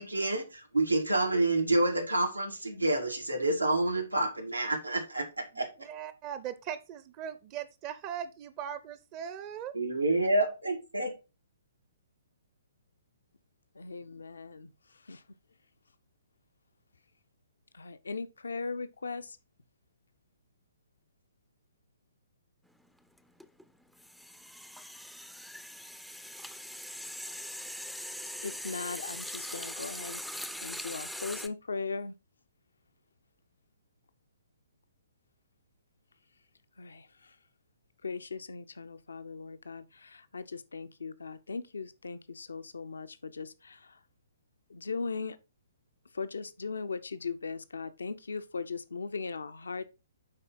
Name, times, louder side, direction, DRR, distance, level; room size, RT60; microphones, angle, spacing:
voice 1, 0.0-5.3 5.6-5.7 9.7-11.1, right 2 dB, 90° right, 1.8 m, -28 dB
voice 2, 5.5-9.7, right 9 dB, 30° right, 0.8 m, -40 dB
voice 3, 13.7-15.2 17.7-19.4 28.4-32.1 36.8-37.4 38.0-44.0 44.7-45.4 46.1-49.8, left 4 dB, 70° left, 0.8 m, -39 dB
sound 1, 22.7-22.9 23.2-31.5, equal, ahead, 0.6 m, -41 dB
9.8 x 4.1 x 3.9 m
figure-of-eight pair, 125°, 0 cm